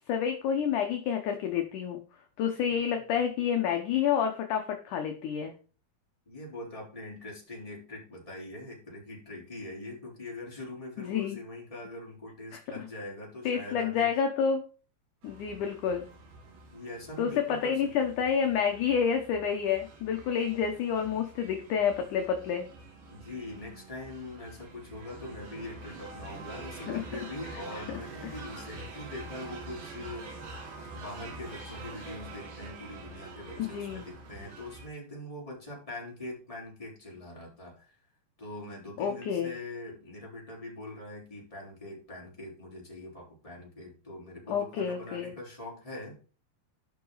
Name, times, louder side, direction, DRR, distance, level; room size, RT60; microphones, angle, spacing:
voice 1, 0.1-2.0 2.4-5.5 11.0-11.4 12.5-12.6 13.5-14.6 15.2-16.0 17.2-22.7 26.9-27.0 27.9-28.0 28.2-28.4 33.6-34.0 39.0-39.5 44.5-45.3, left 7 dB, 65° left, 4 dB, 2.2 m, -29 dB
voice 2, 6.3-14.1 15.5-16.2 16.7-17.8 23.1-38.0 38.4-46.2, left 2 dB, 10° left, -4 dB, 3.9 m, -43 dB
sound 1, 15.2-34.9, right 3 dB, 75° right, 4.2 m, -46 dB
12.5 x 6.0 x 4.0 m, 0.36 s
omnidirectional pair, 4.4 m